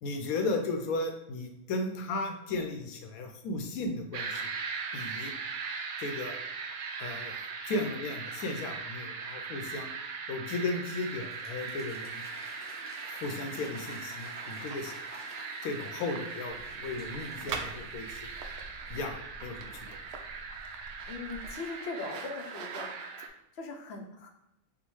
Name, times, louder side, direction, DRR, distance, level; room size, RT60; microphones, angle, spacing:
voice 1, 0.0-4.5 4.9-5.3 6.0-6.3 7.0-9.9 10.3-12.2 13.0-14.9 15.6-18.3 18.9-19.9, left 2 dB, 75° left, 4 dB, 1.1 m, -35 dB
sound 1, 4.1-23.3, right 5 dB, 70° right, 0.6 m, -40 dB
Applause / Crowd, 10.8-18.5, equal, 10° left, 0.5 m, -51 dB
sound 2, 16.5-21.5, right 4 dB, 90° right, 1.1 m, -44 dB
voice 2, 21.1-22.9 23.2-24.3, left 3 dB, 60° left, 3 dB, 0.7 m, -40 dB
3.6 x 2.2 x 4.4 m, 0.86 s
omnidirectional pair, 1.5 m